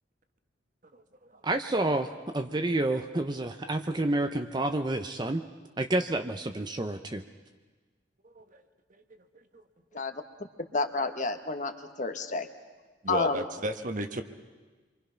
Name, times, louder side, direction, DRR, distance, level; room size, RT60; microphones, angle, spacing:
voice 1, 0.9-1.4 8.2-8.6 9.3-9.6 13.0-14.2, right 1 dB, 45° right, 7 dB, 1.3 m, -35 dB
voice 2, 1.4-5.4 5.8-7.2, right 2 dB, 25° right, 6 dB, 0.7 m, -29 dB
voice 3, 10.7-12.5 13.1-13.4, left 3 dB, 45° left, 7 dB, 1.2 m, -30 dB
27.0 x 24.0 x 5.7 m, 1.3 s
head